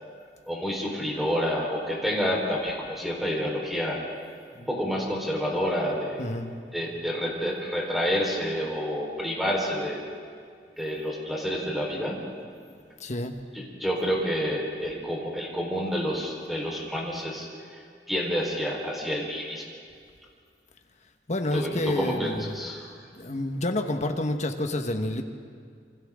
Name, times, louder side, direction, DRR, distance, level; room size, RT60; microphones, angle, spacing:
voice 1, 0.5-4.1 4.5-6.2 6.7-10.0 10.8-12.2 13.8-17.8 18.1-19.6 21.5-22.9, equal, ahead, -2 dB, 4.3 m, -29 dB
voice 2, 6.2-6.5 13.0-13.3 21.3-22.7 23.2-25.2, left 1 dB, 40° left, 5 dB, 1.5 m, -29 dB
27.5 x 25.5 x 3.8 m, 2.2 s
head